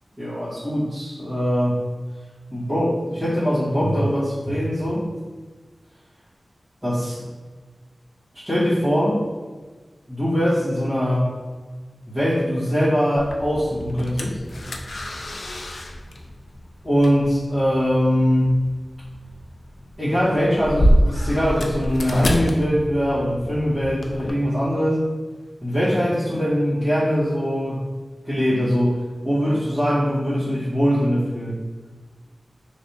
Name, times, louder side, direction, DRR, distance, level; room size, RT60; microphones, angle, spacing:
voice 1, 0.2-1.8 2.5-5.1 6.8-7.3 8.3-9.3 10.1-11.3 12.1-14.4 16.8-18.6 20.0-25.0 25.6-27.9 28.2-31.6, equal, 20° right, -15 dB, 1.4 m, -22 dB
sound 1, 13.2-24.3, equal, 65° left, 0.3 m, -27 dB
3.2 x 3.1 x 2.7 m, 1.4 s
wide cardioid pair, 85°, 0 cm